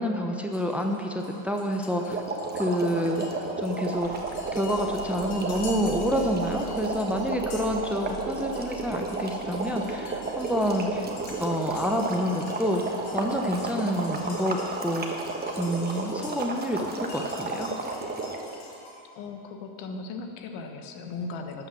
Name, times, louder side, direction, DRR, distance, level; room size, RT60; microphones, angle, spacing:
voice 1, 0.0-2.2 2.5-3.2 3.6-4.1 4.5-11.1 11.4-15.3 15.6-17.7, equal, 5° right, 2 dB, 0.7 m, -28 dB
sound 1, 0.5-19.0, left 2 dB, 80° left, 2.5 m, -46 dB
sound 2, 2.1-18.5, right 3 dB, 20° right, 1.3 m, -33 dB
sound 3, 3.9-15.0, right 11 dB, 50° right, 1.1 m, -45 dB
voice 2, 19.1-21.7, left 4 dB, 65° left, 5 dB, 1.3 m, -37 dB
12.0 x 5.8 x 7.1 m, 2.7 s
supercardioid pair, 100°, 49 cm